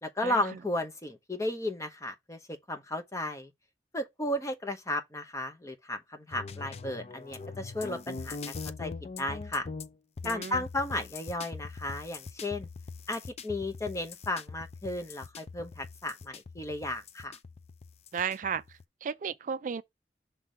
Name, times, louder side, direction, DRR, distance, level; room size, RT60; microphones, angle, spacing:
voice 1, 0.0-3.5 3.9-8.9 9.2-9.7 10.2-12.7 13.1-17.4, left 1 dB, 15° left, 0.9 m, -34 dB
sound 1, 6.3-18.8, left 4 dB, 35° left, 0.4 m, -42 dB
voice 2, 10.2-10.6 18.1-19.8, right 6 dB, 45° right, 0.3 m, -34 dB
5.9 x 3.4 x 5.0 m
head